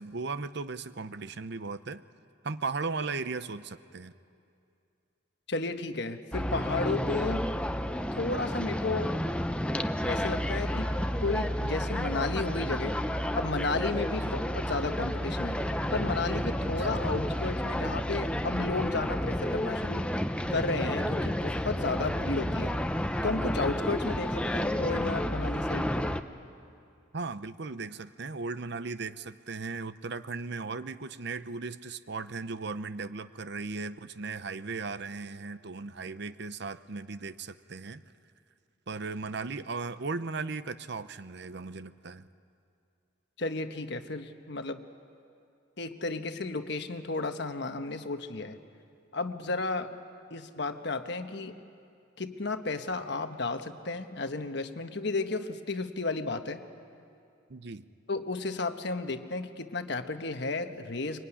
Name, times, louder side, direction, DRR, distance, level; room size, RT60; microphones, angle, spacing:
voice 1, 0.0-2.0 2.4-4.1 14.2-14.4 16.6-16.9 27.1-38.0 38.9-42.3 57.5-57.9, right 4 dB, 55° right, 13 dB, 0.7 m, -37 dB
voice 2, 5.5-7.5 8.2-9.1 9.6-9.8 10.1-10.9 11.2-13.0 13.3-15.6 15.9-20.1 20.5-22.7 23.2-26.1 43.4-44.8 45.8-48.6 49.1-49.9 50.3-51.6 52.2-56.6 58.1-61.2, left 3 dB, 55° left, 7 dB, 1.2 m, -33 dB
sound 1, 6.3-26.2, equal, 5° left, 0.7 m, -31 dB
24.0 x 23.5 x 9.9 m, 2.5 s
head